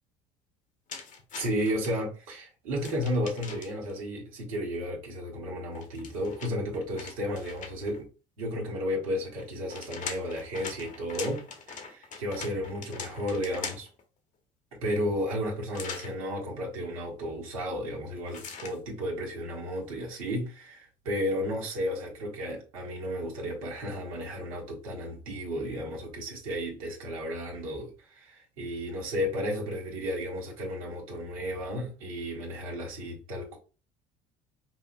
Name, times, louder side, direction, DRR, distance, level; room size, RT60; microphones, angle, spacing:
sound 1, 0.9-1.9 2.8-3.9 5.7-8.0 9.4-14.0 15.7-16.1 18.3-18.8, left 5 dB, 45° left, 0.9 m, -41 dB
voice 1, 1.3-8.1 8.4-13.9 14.8-33.6, equal, 90° right, 1.4 m, -33 dB
5.5 x 2.0 x 2.5 m
hypercardioid pair, 75°, 18 cm